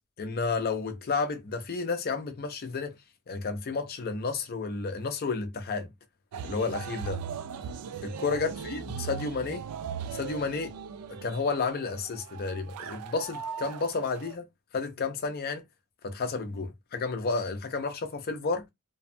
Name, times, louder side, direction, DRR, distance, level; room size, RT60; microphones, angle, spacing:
voice 1, 0.2-3.0 3.3-5.9 6.4-7.2 8.0-9.7 10.1-10.7 11.1-14.5 14.7-15.6 16.0-18.7, left 4 dB, 45° left, 0.5 m, -31 dB
sound 1, 6.3-14.3, right 7 dB, 85° right, 0.3 m, -39 dB
2.6 x 2.2 x 2.5 m
head